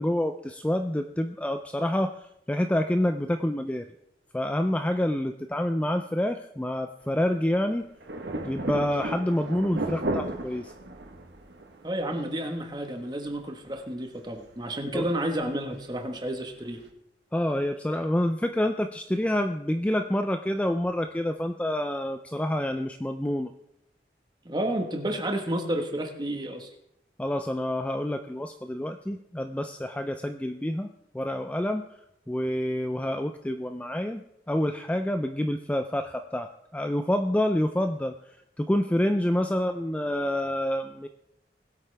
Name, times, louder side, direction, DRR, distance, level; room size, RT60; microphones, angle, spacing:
voice 1, 0.0-3.9 4.3-7.9 8.4-10.7 14.9-15.1 17.3-23.5 27.2-30.9 31.1-31.8 32.3-34.2 34.5-41.1, left 1 dB, 10° left, 7 dB, 0.3 m, -27 dB
sound 1, 8.0-13.4 13.7-13.8 14.4-14.5 15.3-15.9 16.3-16.4 16.9-17.0, right 2 dB, 75° right, 1.2 m, -34 dB
voice 2, 11.8-16.8 24.4-26.7, right 1 dB, 25° right, 4 dB, 1.4 m, -31 dB
20.5 x 8.3 x 3.4 m, 0.80 s
head